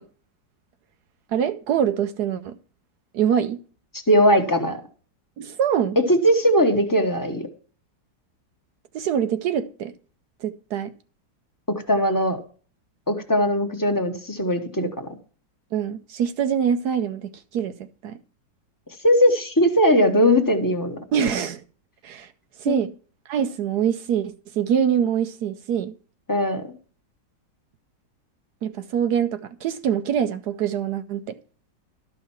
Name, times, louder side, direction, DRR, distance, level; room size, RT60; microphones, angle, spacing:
voice 1, 1.3-2.5 3.1-3.6 5.4-6.0 8.9-9.9 10.4-10.9 15.7-17.8 18.0-18.2 21.1-21.6 22.0-22.3 22.6-22.9 23.3-25.9 28.6-31.3, right 8 dB, 70° right, 1.1 m, -24 dB
voice 2, 4.1-4.8 6.1-7.5 11.7-12.4 13.1-15.1 19.0-21.0 22.7-22.8 26.3-26.6, equal, 10° left, 1.2 m, -19 dB
13.0 x 5.5 x 5.7 m
omnidirectional pair, 2.0 m